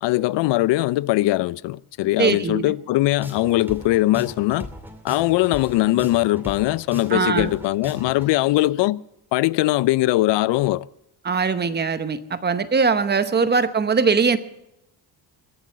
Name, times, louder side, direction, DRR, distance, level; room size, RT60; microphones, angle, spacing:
voice 1, 0.0-4.7 5.0-9.0 9.3-10.9, left 17 dB, 80° left, 0.5 m, -21 dB
voice 2, 2.2-2.7 7.1-7.5 11.2-14.4, right 5 dB, 25° right, 0.9 m, -21 dB
sound 1, 3.1-8.3, left 1 dB, 5° right, 2.3 m, -38 dB
22.0 x 7.9 x 7.4 m
cardioid pair, 155°, 42 cm